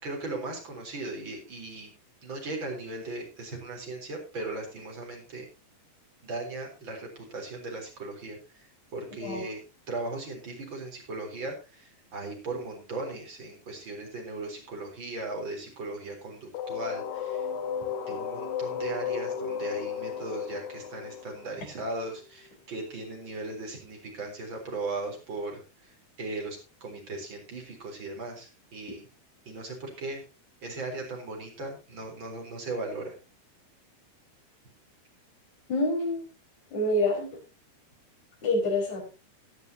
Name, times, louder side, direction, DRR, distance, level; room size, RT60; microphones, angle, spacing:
voice 1, 0.0-1.9 2.2-5.4 6.2-8.7 8.9-9.6 9.9-17.5 18.1-29.1 29.4-30.2 30.6-33.1, right 2 dB, 30° right, 1 dB, 4.3 m, -37 dB
sound 1, 16.5-22.3, left 7 dB, 80° left, 3.5 m, -34 dB
voice 2, 35.7-36.2 36.7-37.3 38.4-39.0, left 1 dB, 45° left, 0 dB, 6.0 m, -26 dB
18.0 x 10.5 x 2.9 m, 0.30 s
omnidirectional pair, 4.6 m